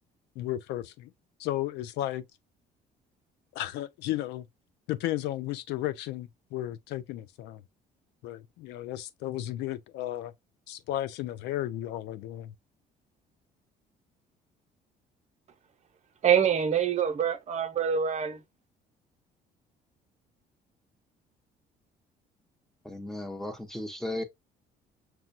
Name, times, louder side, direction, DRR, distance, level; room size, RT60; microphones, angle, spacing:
voice 1, 0.4-1.1 1.4-2.2 3.5-4.5 4.9-7.6 8.2-10.3 10.7-12.5, left 14 dB, 85° left, 0.5 m, -34 dB
voice 2, 16.2-18.4, right 8 dB, 40° right, 0.8 m, -25 dB
voice 3, 22.8-24.2, left 1 dB, ahead, 0.8 m, -35 dB
6.0 x 2.2 x 2.5 m
cardioid pair, 110°, 17 cm